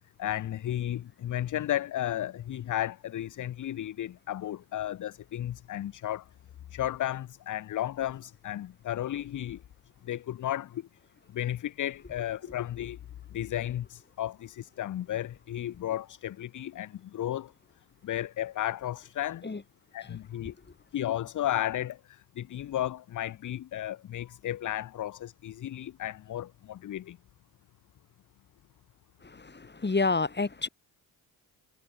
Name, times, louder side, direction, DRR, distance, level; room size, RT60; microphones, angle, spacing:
voice 1, 0.2-6.2 6.7-9.6 10.0-10.9 11.3-13.0 13.3-17.5 18.0-19.4 19.9-20.5 20.9-27.2, left 12 dB, 45° left, 0.6 m, -33 dB
voice 2, 29.2-30.7, left 3 dB, 25° left, 2.6 m, -29 dB
hypercardioid pair, 50°, 43 cm